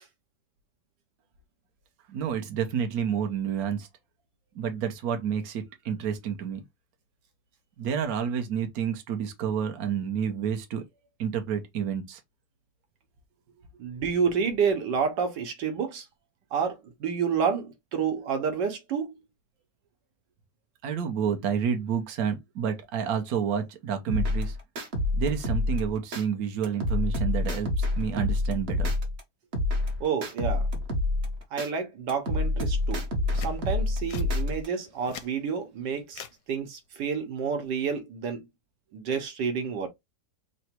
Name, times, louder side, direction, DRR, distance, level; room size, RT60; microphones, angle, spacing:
voice 1, 2.1-3.9 4.5-6.6 7.8-10.8 11.2-12.2 20.8-24.6 25.1-28.9, right 7 dB, 65° right, 1.2 m, -29 dB
voice 2, 13.8-16.1 16.5-19.2 30.0-30.7 31.5-33.1 33.3-36.2 36.5-38.5 38.9-39.9, right 6 dB, 90° right, 1.5 m, -29 dB
sound 1, 24.1-26.2 26.6-29.2 29.5-31.7 32.1-34.7, left 2 dB, 40° right, 1.1 m, -27 dB
sound 2, 33.3-33.6 34.1-34.3 34.9-35.3 36.1-36.4 37.7-37.9, left 9 dB, 85° left, 1.3 m, -42 dB
3.9 x 2.2 x 4.3 m
omnidirectional pair, 1.8 m